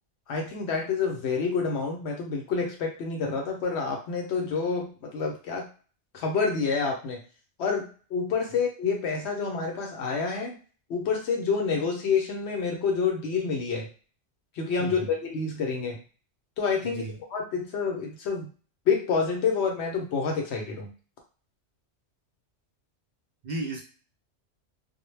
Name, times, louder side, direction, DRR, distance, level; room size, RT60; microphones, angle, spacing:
voice 1, 0.3-5.7 6.1-7.2 7.6-10.6 10.9-13.9 14.5-16.0 16.6-17.0 17.3-18.5 18.9-20.9, left 5 dB, 70° left, 1 dB, 0.8 m, -28 dB
voice 2, 14.8-15.2 16.8-17.2 23.4-23.8, right 2 dB, 60° right, -1 dB, 0.4 m, -35 dB
2.1 x 2.1 x 3.1 m, 0.38 s
omnidirectional pair, 1.2 m